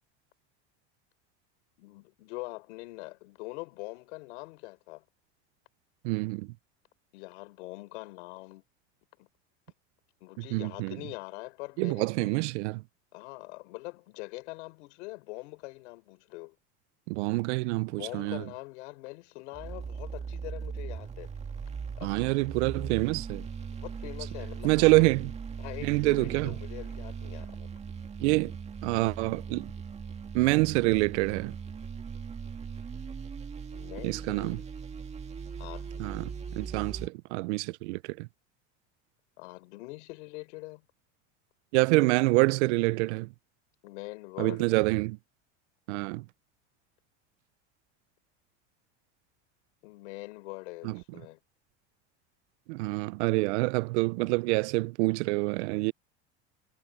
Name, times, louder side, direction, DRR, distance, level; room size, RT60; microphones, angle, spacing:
voice 1, 1.8-5.0 7.1-8.6 9.2-9.3 10.2-12.4 13.1-16.6 17.9-21.4 22.0-22.2 23.8-25.0 25.6-27.7 33.7-34.7 35.6-36.3 39.4-40.8 43.8-44.7 49.8-51.4, left 24 dB, 80° left, 4.3 m, -43 dB
voice 2, 6.0-6.5 10.4-11.0 11.8-12.8 17.1-18.4 22.0-23.4 24.6-25.3 25.8-26.5 28.2-28.6 28.8-29.7 30.3-31.6 34.0-34.6 36.0-38.3 41.7-43.3 44.4-45.2 45.9-46.3 50.8-51.0 52.7-55.9, right 24 dB, 75° right, 0.6 m, -27 dB
sound 1, 19.5-37.1, right 6 dB, 20° right, 2.0 m, -39 dB
supercardioid pair, 145°, 35 cm